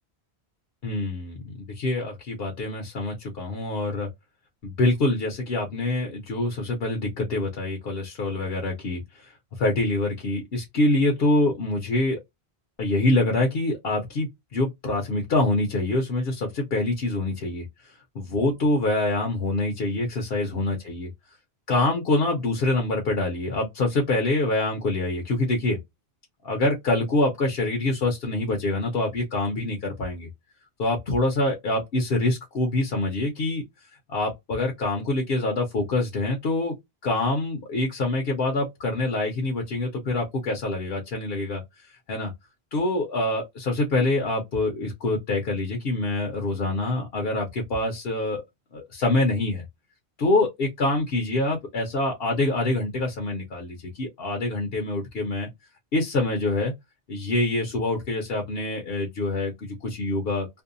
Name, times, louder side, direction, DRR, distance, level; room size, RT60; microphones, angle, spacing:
voice 1, 0.8-4.1 4.6-12.2 12.8-21.1 21.7-25.8 26.4-30.3 30.8-33.6 34.1-36.7 37.0-42.3 42.7-48.4 48.7-49.6 50.2-55.5 55.9-56.7 57.1-60.6, left 2 dB, 65° left, 0.9 m, -25 dB
2.6 x 2.1 x 2.5 m
omnidirectional pair, 1.1 m